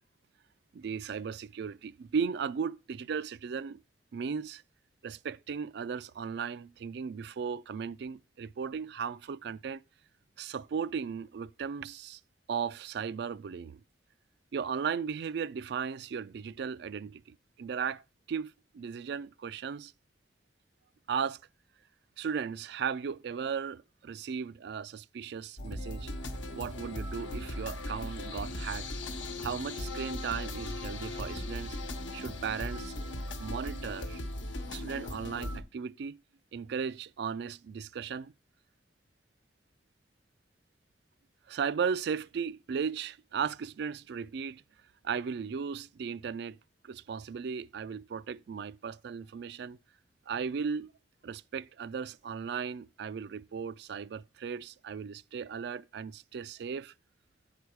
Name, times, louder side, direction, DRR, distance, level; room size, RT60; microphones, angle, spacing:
voice 1, 0.7-3.8 4.1-4.6 5.0-9.8 10.4-12.2 12.5-13.8 14.5-18.0 18.3-19.9 21.1-21.4 22.2-26.1 26.5-28.9 29.4-31.8 32.1-32.9 33.4-34.2 34.7-36.2 36.5-38.3 41.5-44.6 45.0-46.6 46.8-49.8 50.3-50.9 51.2-56.9, right 6 dB, 60° right, 0.3 m, -36 dB
sound 1, 25.6-35.6, left 1 dB, 80° left, 1.1 m, -38 dB
8.7 x 4.9 x 4.6 m
head